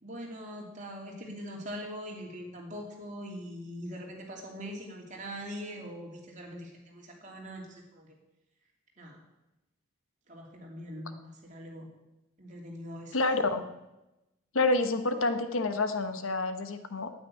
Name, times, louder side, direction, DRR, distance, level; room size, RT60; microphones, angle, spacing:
voice 1, 0.0-8.2 9.0-9.2 10.3-11.9 12.4-13.2, equal, 35° right, -1 dB, 2.9 m, -42 dB
voice 2, 13.1-13.7 14.5-17.1, left 2 dB, 75° left, 9 dB, 1.1 m, -28 dB
9.2 x 9.2 x 9.8 m, 0.97 s
head